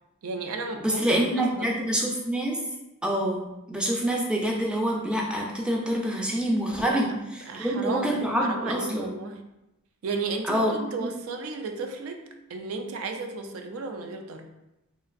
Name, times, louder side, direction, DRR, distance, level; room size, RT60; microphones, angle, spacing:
voice 1, 0.2-1.7 6.8-9.4 10.0-14.5, right 3 dB, 80° right, 5 dB, 0.4 m, -34 dB
voice 2, 0.8-2.6 3.0-7.1 7.3-9.1 10.4-10.7 11.0-11.1, right 1 dB, 5° right, -1 dB, 0.3 m, -26 dB
3.0 x 2.4 x 2.4 m, 0.93 s
head